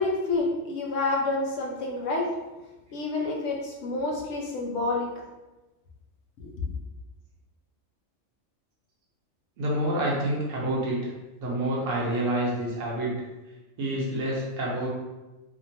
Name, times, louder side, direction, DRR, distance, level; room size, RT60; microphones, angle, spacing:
voice 1, 0.0-2.3 2.9-5.1 6.4-6.5, left 2 dB, 80° left, -1 dB, 0.9 m, -28 dB
voice 2, 9.6-11.1 11.4-13.1 13.8-14.9, right 1 dB, 85° right, -4 dB, 1.2 m, -28 dB
3.0 x 2.2 x 2.7 m, 1.1 s
omnidirectional pair, 1.3 m